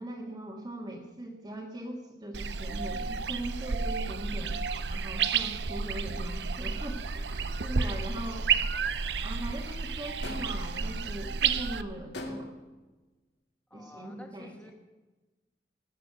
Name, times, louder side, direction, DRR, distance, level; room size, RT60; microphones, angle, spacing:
voice 1, 0.0-4.6 4.9-8.5 9.2-12.6 13.7-14.5, right 1 dB, 25° right, -4 dB, 1.7 m, -40 dB
sound 1, 2.3-11.8, right 5 dB, 80° right, 0.7 m, -31 dB
sound 2, 10.2-10.8 12.1-12.8, left 1 dB, 75° left, 2.0 m, -39 dB
voice 2, 13.7-14.7, left 1 dB, 10° left, 3 dB, 1.8 m, -50 dB
20.0 x 6.7 x 8.2 m, 1.2 s
head